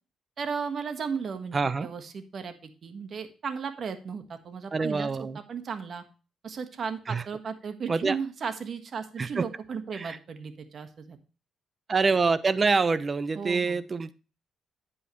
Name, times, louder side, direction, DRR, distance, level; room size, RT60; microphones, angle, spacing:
voice 1, 0.4-6.0 6.4-11.2 13.3-13.8, right 6 dB, 50° right, 8 dB, 1.5 m, -35 dB
voice 2, 1.5-1.9 4.7-5.4 7.1-7.2 7.9-8.2 9.2-9.5 9.9-10.2 11.9-14.1, right 4 dB, 35° right, 15 dB, 0.7 m, -26 dB
9.5 x 8.4 x 3.1 m, 0.34 s
cardioid pair, 90°, 0 cm